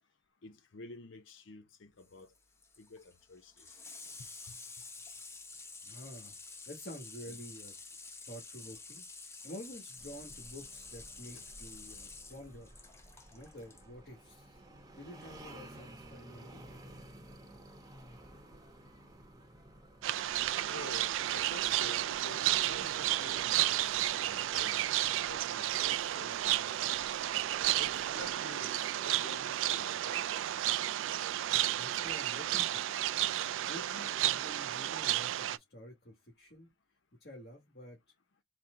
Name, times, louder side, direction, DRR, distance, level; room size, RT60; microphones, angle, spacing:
voice 1, 0.4-2.3 2.8-3.8 4.2-4.6 7.3-7.4 11.3-11.5 20.7-27.0 27.6-30.1, left 3 dB, 80° left, 0.7 m, -51 dB
Water tap faucet / Sink (filling or washing), 2.0-13.9 15.2-15.3, left 4 dB, 15° left, 0.6 m, -50 dB
voice 2, 5.5-6.4 6.7-7.7 8.2-12.7 13.3-14.6 14.9-16.6 31.5-32.9 33.6-36.7 37.2-38.0, equal, 55° left, 1.4 m, -49 dB
sound 1, 10.0-28.3, right 1 dB, 20° right, 0.8 m, -55 dB
sound 2, 20.0-35.6, right 13 dB, 85° right, 0.3 m, -32 dB
4.2 x 2.1 x 3.7 m
head